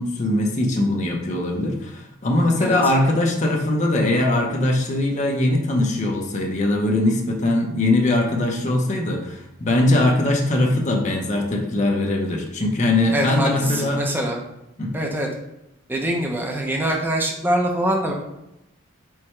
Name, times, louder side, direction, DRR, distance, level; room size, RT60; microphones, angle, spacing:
voice 1, 0.0-14.0 14.8-14.9, left 1 dB, 35° left, 1 dB, 0.6 m, -21 dB
voice 2, 13.1-14.4 14.9-15.3 15.9-18.1, right 1 dB, 10° right, 0 dB, 0.5 m, -24 dB
4.7 x 2.2 x 4.3 m, 0.88 s
head